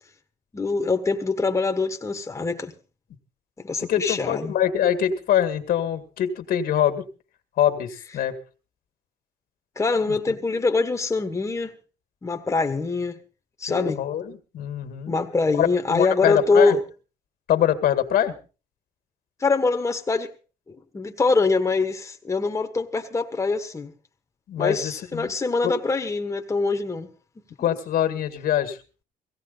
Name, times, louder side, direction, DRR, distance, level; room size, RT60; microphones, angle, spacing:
voice 1, 0.5-2.7 3.6-4.5 9.7-11.7 12.2-13.2 13.6-14.0 15.1-16.8 19.4-20.3 20.7-23.9 24.6-27.1, left 3 dB, 15° left, 1.4 m, -24 dB
voice 2, 3.9-7.1 7.6-8.3 10.1-10.2 13.7-15.2 15.5-16.8 17.5-18.3 24.5-25.3 25.6-25.7 27.6-28.8, left 10 dB, 60° left, 2.0 m, -24 dB
17.0 x 16.5 x 4.0 m
cardioid pair, 110°, 17 cm